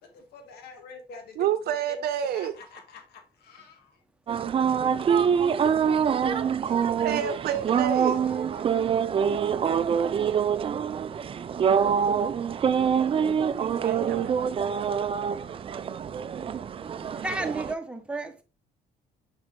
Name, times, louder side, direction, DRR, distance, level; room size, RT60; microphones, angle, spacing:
voice 1, 0.0-4.0 4.4-4.7 5.6-6.0 6.3-6.9 8.0-9.7, left 4 dB, 75° left, 1.7 m, -48 dB
voice 2, 1.4-2.5 6.9-8.2 12.9-13.0 13.4-14.4, right 10 dB, 65° right, 0.7 m, -29 dB
sound 1, 4.3-17.7, right 7 dB, 35° right, 0.4 m, -25 dB
voice 3, 17.2-18.4, right 2 dB, 5° right, 1.0 m, -32 dB
6.1 x 5.3 x 3.2 m
cardioid pair, 110°, 17 cm